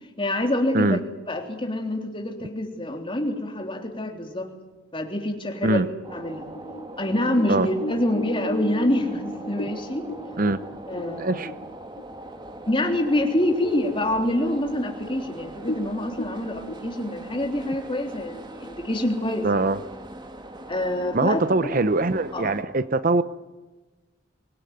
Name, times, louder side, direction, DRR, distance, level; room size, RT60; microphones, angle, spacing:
voice 1, 0.2-1.0 1.3-4.5 4.9-5.9 6.1-6.4 7.0-10.0 10.9-11.5 12.7-19.7 20.7-21.7 22.3-22.5, left 1 dB, 25° left, 3.4 m, -26 dB
sound 1, 6.0-22.6, right 1 dB, 25° right, 2.0 m, -41 dB
sound 2, 6.3-12.1 12.5-12.6 13.0-13.5 13.9-14.0 14.7-14.8 15.0-15.2 15.6-16.7, equal, 55° left, 3.5 m, -35 dB
voice 2, 11.2-11.5 19.4-19.8 21.1-23.2, right 2 dB, 45° right, 0.8 m, -22 dB
24.5 x 19.5 x 9.5 m
head